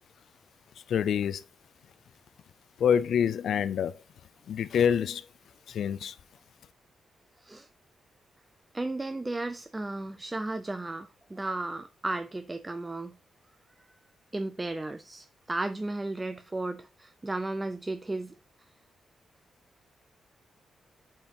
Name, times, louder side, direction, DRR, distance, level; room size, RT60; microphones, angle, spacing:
voice 1, 0.9-1.4 2.8-3.9 4.5-5.2 5.7-6.1, left 8 dB, 75° left, 0.4 m, -26 dB
voice 2, 8.7-13.2 14.3-18.4, right 2 dB, 15° right, 0.4 m, -34 dB
8.7 x 4.4 x 2.9 m
cardioid pair, 125°, 0 cm